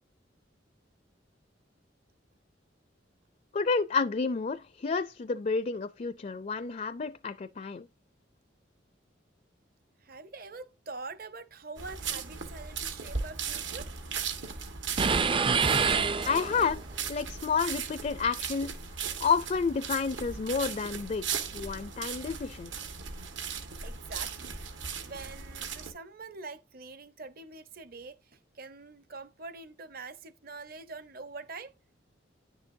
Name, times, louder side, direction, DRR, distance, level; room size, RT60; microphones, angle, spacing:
voice 1, 3.5-7.9 16.2-16.8 17.1-18.8 19.2-22.9, left 5 dB, 40° left, 0.4 m, -30 dB
voice 2, 10.0-14.0 23.8-24.6 25.0-31.7, right 3 dB, 50° right, 0.9 m, -44 dB
sound 1, 11.8-25.9, right 6 dB, 80° right, 1.7 m, -38 dB
sound 2, 15.0-16.8, right 5 dB, 25° right, 0.4 m, -26 dB
10.0 x 6.7 x 2.7 m
head